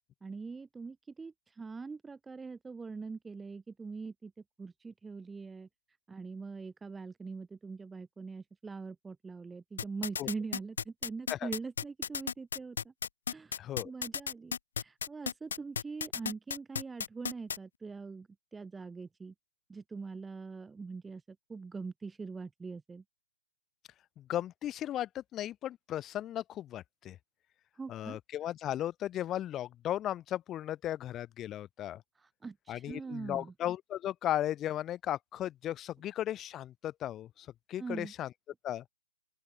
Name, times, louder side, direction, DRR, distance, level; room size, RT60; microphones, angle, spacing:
voice 1, 0.2-4.3 4.6-5.7 6.1-12.9 13.3-19.3 19.7-23.0 27.7-28.2 32.2-33.5 37.8-38.1, right 4 dB, 5° right, 3.5 m, -43 dB
sound 1, 9.8-17.6, left 7 dB, 60° left, 2.8 m, -34 dB
voice 2, 13.6-13.9 24.2-27.2 27.9-32.0 32.7-38.3 38.6-38.8, left 12 dB, 20° left, 0.5 m, -36 dB
open air
figure-of-eight pair, 135°, 0 cm